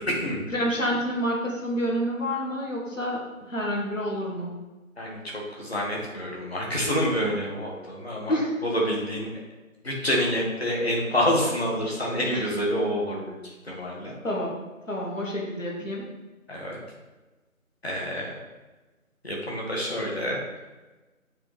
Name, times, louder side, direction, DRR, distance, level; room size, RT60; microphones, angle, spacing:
voice 1, 0.5-4.5 8.3-8.5 14.2-14.5 14.9-16.0, equal, 60° left, -2 dB, 1.9 m, -28 dB
voice 2, 5.0-9.3 9.8-14.1 16.5-16.8 17.8-18.4 19.2-20.4, equal, 45° left, -3 dB, 1.6 m, -28 dB
8.2 x 3.8 x 3.3 m, 1.2 s
figure-of-eight pair, 175°, 42 cm